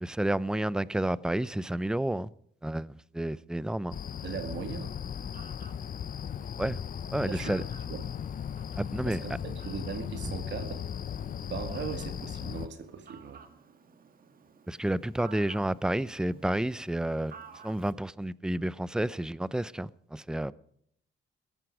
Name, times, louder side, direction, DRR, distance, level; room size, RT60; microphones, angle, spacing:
voice 1, 0.0-2.3 2.6-4.0 6.6-6.8 7.1-7.6 8.8-9.2 14.7-17.3 17.6-20.5, right 1 dB, 5° right, 0.5 m, -30 dB
sound 1, 3.9-12.7, left 8 dB, 45° left, 0.7 m, -37 dB
voice 2, 4.2-4.9 7.3-7.6 7.9-8.0 9.1-10.8 11.5-13.4, right 7 dB, 65° right, 2.1 m, -38 dB
Fowl, 4.7-17.9, right 5 dB, 45° right, 1.9 m, -54 dB
16.5 x 14.5 x 4.8 m
cardioid pair, 90°, 20 cm